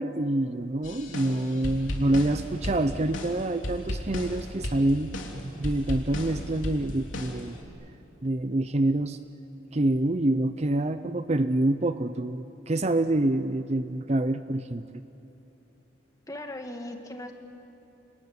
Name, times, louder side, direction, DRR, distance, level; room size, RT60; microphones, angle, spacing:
voice 1, 0.0-7.6 8.2-9.2 9.7-15.0, right 1 dB, 35° right, 11 dB, 0.6 m, -26 dB
sound 1, 0.8-7.6, left 1 dB, 90° left, 3.4 m, -35 dB
voice 2, 16.3-17.3, left 1 dB, 20° left, 4 dB, 1.9 m, -38 dB
29.0 x 20.0 x 9.7 m, 2.9 s
head